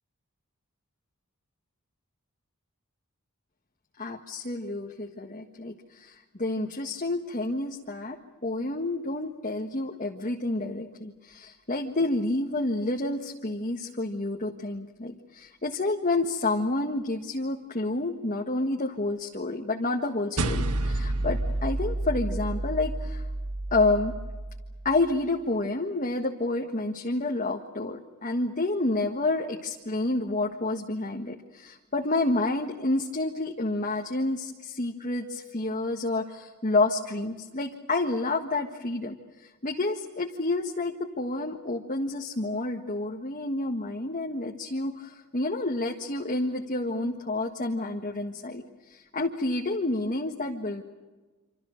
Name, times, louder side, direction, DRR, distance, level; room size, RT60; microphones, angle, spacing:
voice 1, 4.0-8.2 8.4-23.2 23.7-24.1 24.9-39.2 39.6-50.8, left 2 dB, 35° left, 1 dB, 1.6 m, -29 dB
sound 1, 20.4-25.0, right 2 dB, 80° right, 1.5 m, -30 dB
27.0 x 27.0 x 6.5 m, 1.3 s
head